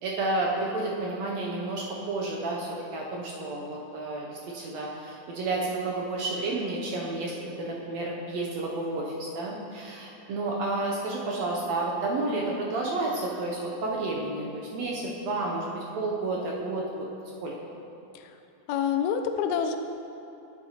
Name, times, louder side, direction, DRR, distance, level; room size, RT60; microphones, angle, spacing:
voice 1, 0.0-17.1 17.4-17.5, right 2 dB, 75° right, -2 dB, 1.7 m, -31 dB
voice 2, 18.7-19.8, left 7 dB, 80° left, 7 dB, 1.8 m, -27 dB
11.0 x 7.0 x 2.9 m, 2.9 s
omnidirectional pair, 3.6 m